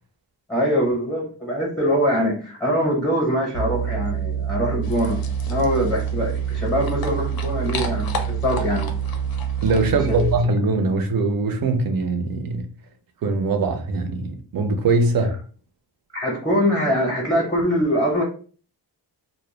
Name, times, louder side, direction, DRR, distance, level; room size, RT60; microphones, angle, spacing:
voice 1, 0.5-8.9 9.9-10.3 10.6-10.7 16.1-18.2, equal, 10° left, 0.6 m, -23 dB
sound 1, 3.5-10.4, right 8 dB, 85° right, 0.8 m, -26 dB
sound 2, 4.8-10.4, left 3 dB, 55° left, 0.5 m, -36 dB
voice 2, 9.6-12.7 13.2-15.3, right 3 dB, 55° right, 0.5 m, -22 dB
2.1 x 2.0 x 3.0 m
wide cardioid pair, 145°, 43 cm